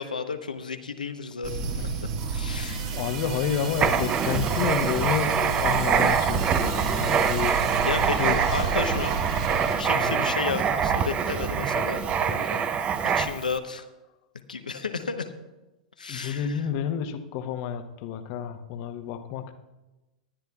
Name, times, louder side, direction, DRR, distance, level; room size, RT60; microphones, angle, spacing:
voice 1, 0.0-1.7 2.3-2.8 7.9-9.2 9.8-12.7 13.1-13.9 14.5-15.3 16.0-16.6, left 5 dB, 90° left, 8 dB, 0.9 m, -32 dB
sound 1, 1.4-9.8, right 4 dB, 55° right, 2.0 m, -32 dB
voice 2, 2.5-8.5 9.9-10.2 16.1-19.5, left 8 dB, 50° left, 8 dB, 1.0 m, -30 dB
Writing, 3.7-13.5, right 7 dB, 30° right, 0.7 m, -25 dB
20.0 x 10.5 x 2.4 m, 1.0 s
hypercardioid pair, 100°, 4 cm